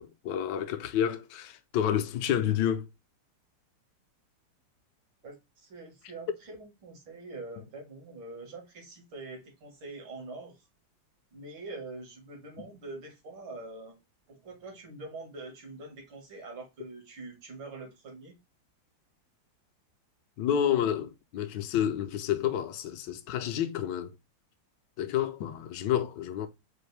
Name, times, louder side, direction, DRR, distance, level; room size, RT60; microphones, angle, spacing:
voice 1, 0.0-2.9 12.6-12.7 20.4-24.1 25.0-26.5, left 10 dB, 75° left, 1.2 m, -29 dB
voice 2, 5.2-10.7 11.3-14.0 14.3-18.4, right 3 dB, 80° right, 2.3 m, -44 dB
4.7 x 2.5 x 3.1 m
omnidirectional pair, 2.1 m